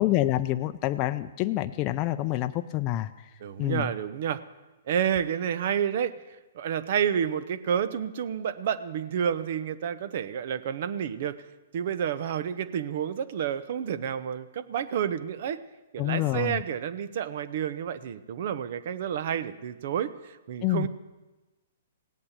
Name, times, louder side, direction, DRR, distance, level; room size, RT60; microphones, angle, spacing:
voice 1, 0.0-3.1 3.6-3.9 16.0-16.6 20.6-20.9, left 14 dB, 35° left, 8 dB, 0.5 m, -27 dB
voice 2, 3.4-4.4 4.9-6.2 6.5-11.4 11.7-15.6 15.9-20.9, right 8 dB, 55° right, 14 dB, 0.9 m, -30 dB
17.5 x 8.7 x 8.2 m, 1.2 s
hypercardioid pair, 140°, 0 cm